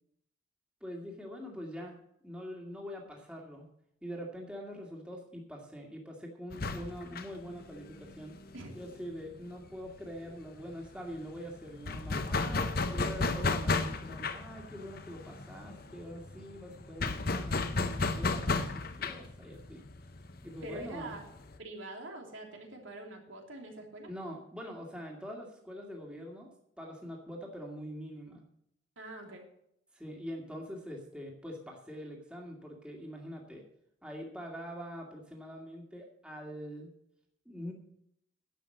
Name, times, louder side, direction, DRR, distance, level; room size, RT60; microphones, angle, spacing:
voice 1, 0.8-3.7 4.0-8.4 8.7-19.8 20.4-21.2 24.0-26.5 26.8-28.5 29.9-33.6 34.0-36.9 37.5-37.7, equal, 5° right, -1 dB, 2.2 m, -44 dB
sound 1, 6.5-9.9 10.2-10.3 10.6-21.6, left 3 dB, 45° left, 0.9 m, -34 dB
voice 2, 20.6-21.2 21.6-24.1 29.0-29.5, right 2 dB, 75° right, 1 dB, 3.2 m, -44 dB
11.0 x 8.4 x 7.7 m, 0.75 s
head